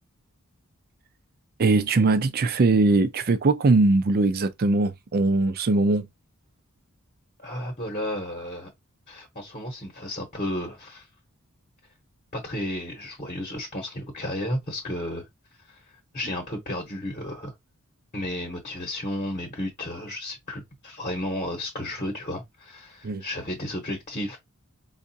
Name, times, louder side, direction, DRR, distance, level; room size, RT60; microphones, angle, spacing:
voice 1, 1.6-6.1 23.0-23.2, right 3 dB, 45° right, 0.4 m, -21 dB
voice 2, 7.4-8.7 9.1-11.1 12.3-15.2 15.7-15.8 16.1-17.5 18.1-24.4, left 1 dB, 35° left, 1.0 m, -33 dB
4.8 x 2.3 x 2.7 m
head